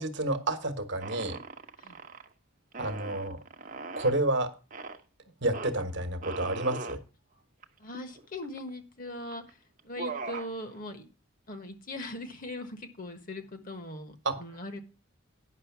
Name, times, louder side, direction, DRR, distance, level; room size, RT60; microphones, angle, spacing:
voice 1, 0.0-1.4 2.8-3.4 4.0-4.5 5.4-7.0 14.2-14.4, right 2 dB, 55° right, 9 dB, 1.2 m, -29 dB
sound 1, 1.0-2.3 2.7-4.2 4.7-5.0 5.5-5.7 6.2-7.0 7.6-7.7 7.9-8.7 9.3-9.5 9.8-10.5, right 3 dB, 40° right, 0.9 m, -40 dB
voice 2, 7.8-9.6 9.8-11.0 11.5-14.8, left 1 dB, 40° left, 8 dB, 1.3 m, -40 dB
9.9 x 6.3 x 5.9 m, 0.32 s
head